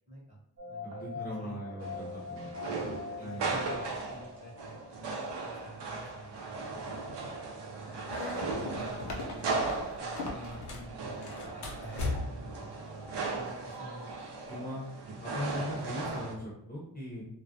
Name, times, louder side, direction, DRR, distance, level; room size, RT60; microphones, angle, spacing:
voice 1, 0.1-0.4 0.7-1.9 3.2-8.1 8.4-14.1, right 1 dB, 15° right, -6 dB, 0.8 m, -49 dB
sound 1, 0.6-15.7, left 4 dB, 55° right, 0.9 m, -47 dB
voice 2, 0.8-2.5 3.2-3.5 14.5-14.8 15.2-17.3, equal, 20° left, -6 dB, 0.6 m, -39 dB
sound 2, 1.8-16.3, right 3 dB, 80° right, 0.6 m, -37 dB
sound 3, 8.0-10.9 11.2-12.5, left 2 dB, 70° left, 0.6 m, -38 dB
2.3 x 2.1 x 2.6 m, 0.79 s
wide cardioid pair, 140°, 41 cm